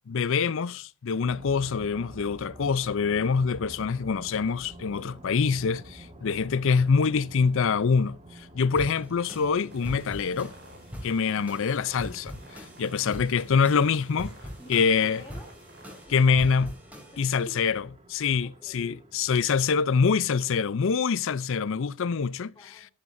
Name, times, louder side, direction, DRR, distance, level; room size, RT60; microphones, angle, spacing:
voice 1, 0.1-10.5 11.0-14.3 14.7-15.2 16.1-16.7 17.2-17.8 18.1-22.5, left 5 dB, 65° left, 0.5 m, -25 dB
sound 1, 1.2-20.6, right 1 dB, 30° right, 1.7 m, -50 dB
sound 2, 8.8-17.5, equal, 5° right, 3.0 m, -42 dB
sound 3, 9.7-16.1, right 1 dB, 55° right, 4.4 m, -53 dB
voice 2, 14.2-15.7 16.0-16.7 17.1-17.5 18.4-19.0 22.5-22.9, left 1 dB, 15° left, 3.7 m, -50 dB
13.5 x 11.5 x 2.6 m
head